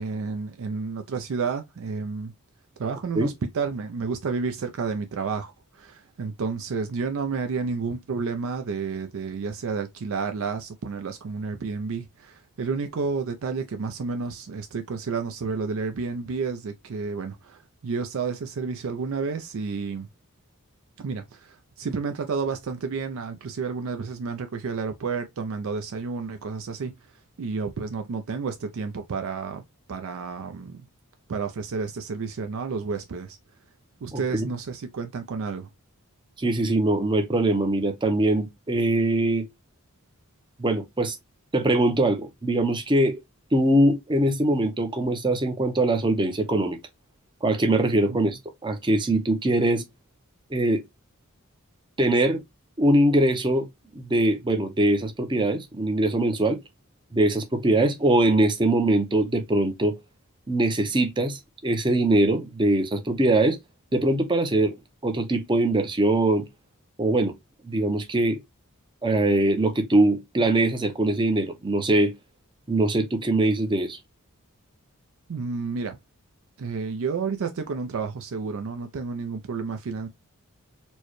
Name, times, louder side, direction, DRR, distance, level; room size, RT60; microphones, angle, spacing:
voice 1, 0.0-2.3 2.8-20.1 21.0-27.0 27.4-29.6 29.9-30.9 31.3-33.4 34.0-35.7 48.1-48.4 75.3-76.0 76.6-80.1, right 5 dB, 65° right, 0.4 m, -31 dB
voice 2, 34.1-34.5 36.4-39.5 40.6-41.2 41.5-43.2 43.5-46.8 47.4-49.8 50.5-50.8 52.0-52.4 52.8-53.7 53.9-56.6 57.1-60.0 60.5-63.6 63.9-64.8 65.0-66.5 67.0-67.4 67.6-68.4 69.0-72.1 72.7-74.0, right 1 dB, 20° right, 0.6 m, -22 dB
4.4 x 2.1 x 3.0 m
head